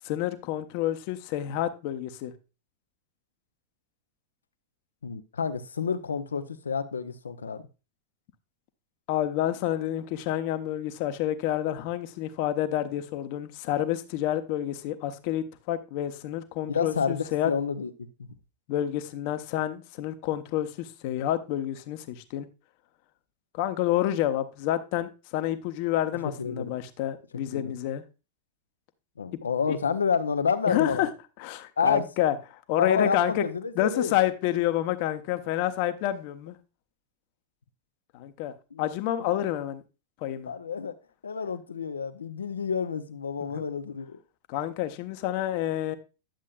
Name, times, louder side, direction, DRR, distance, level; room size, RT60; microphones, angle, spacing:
voice 1, 0.0-2.3 9.1-17.5 18.7-22.5 23.5-28.0 29.7-29.8 30.7-31.1 31.4-33.5 33.8-36.6 38.1-39.8 40.2-40.5 43.5-43.6 44.5-46.0, left 12 dB, 50° left, 0.9 m, -29 dB
voice 2, 5.0-7.6 16.7-17.9 18.2-18.3 26.2-26.7 27.5-27.7 29.2-31.1 31.8-32.0 32.8-34.1 38.7-38.9 39.2-39.5 40.5-40.9 41.2-44.2, left 6 dB, 80° left, 0.7 m, -29 dB
10.5 x 7.4 x 2.4 m
figure-of-eight pair, 95°, 0 cm